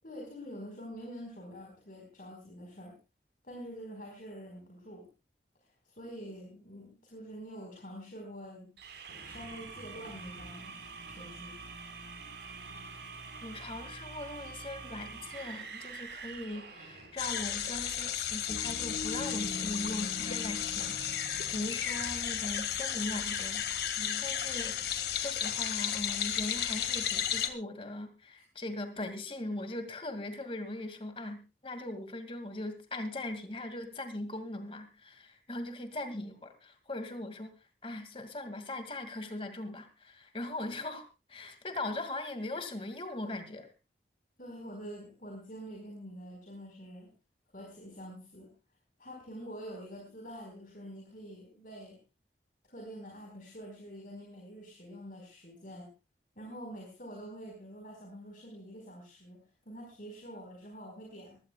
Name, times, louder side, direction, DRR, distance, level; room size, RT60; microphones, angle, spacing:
voice 1, 0.0-3.0 3.4-5.1 5.8-8.7 9.2-10.8 11.1-11.6 24.0-24.3 44.4-47.1 47.5-48.5 49.0-52.0 52.7-55.9 56.3-61.4, equal, 50° left, 0 dB, 4.6 m, -46 dB
sound 1, 8.8-17.3, right 4 dB, 75° right, 4.4 m, -46 dB
voice 2, 13.4-37.5 37.8-43.7, left 2 dB, 30° left, 8 dB, 2.2 m, -40 dB
sound 2, 17.2-27.5, left 9 dB, 65° left, 1.9 m, -33 dB
sound 3, 18.5-22.8, left 2 dB, 90° left, 1.5 m, -43 dB
22.5 x 16.0 x 2.3 m, 0.28 s
head